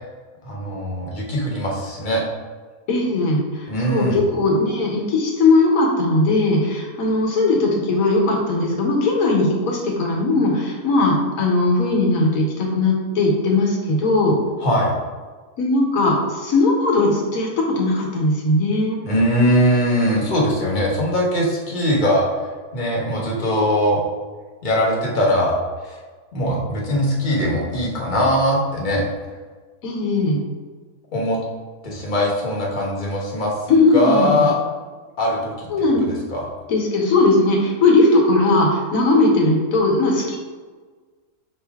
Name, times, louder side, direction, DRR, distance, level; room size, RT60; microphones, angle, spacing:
voice 1, 0.4-2.2 3.7-4.2 14.6-14.9 19.0-24.0 24.6-25.6 25.8-25.9 26.3-29.1 31.1-31.4 31.8-33.5 33.9-34.5 35.2-35.7 36.3-36.4, equal, 35° left, -3 dB, 1.0 m, -21 dB
voice 2, 2.9-14.4 15.6-19.0 29.8-30.4 33.7-34.5 35.7-36.0 36.7-40.4, left 2 dB, 65° left, -1 dB, 1.4 m, -18 dB
5.4 x 2.7 x 3.4 m, 1.4 s
omnidirectional pair, 1.6 m